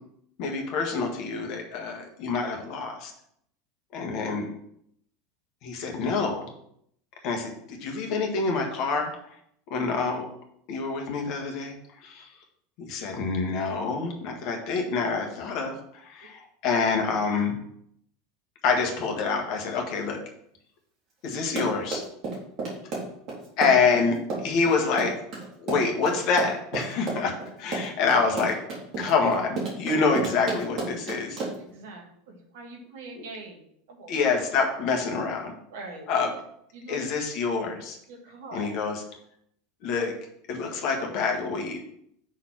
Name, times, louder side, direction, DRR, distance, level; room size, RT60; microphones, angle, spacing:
voice 1, 0.4-3.1 3.9-4.5 5.6-6.5 7.2-9.1 9.7-10.3 10.7-12.3 12.8-17.6 18.6-20.2 21.2-22.0 23.6-25.2 25.6-28.6 29.0-31.4 33.1-33.2 34.1-35.5 36.1-36.3 36.9-38.0 38.5-39.0 39.8-40.1 40.5-41.8, left 4 dB, 55° left, 2 dB, 1.6 m, -27 dB
Run, 21.3-31.7, right 3 dB, 50° right, 2.8 m, -32 dB
voice 2, 31.6-34.1 35.7-36.1 36.7-37.0 38.1-38.7, right 3 dB, 65° right, 1 dB, 1.7 m, -43 dB
6.3 x 4.2 x 5.8 m, 0.71 s
figure-of-eight pair, 80°, 0 cm